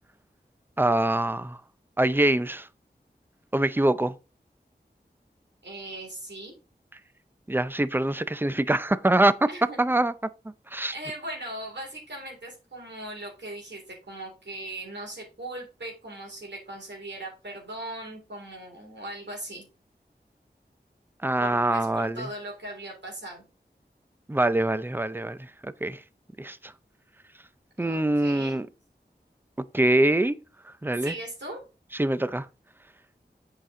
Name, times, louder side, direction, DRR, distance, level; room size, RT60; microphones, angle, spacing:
voice 1, 0.8-1.6 2.0-2.7 3.5-4.2 7.5-9.5 9.8-10.1 10.7-10.9 21.2-22.3 24.3-25.4 25.6-26.0 26.4-26.7 27.8-28.7 29.6-30.4 30.8-31.1 31.9-32.5, right 1 dB, 10° right, 0.5 m, -24 dB
voice 2, 5.6-6.5 9.5-9.8 10.9-19.7 21.4-23.4 27.8-28.6 31.0-31.6, right 1 dB, 85° right, 3.5 m, -39 dB
8.1 x 5.8 x 3.7 m
wide cardioid pair, 60°, 18 cm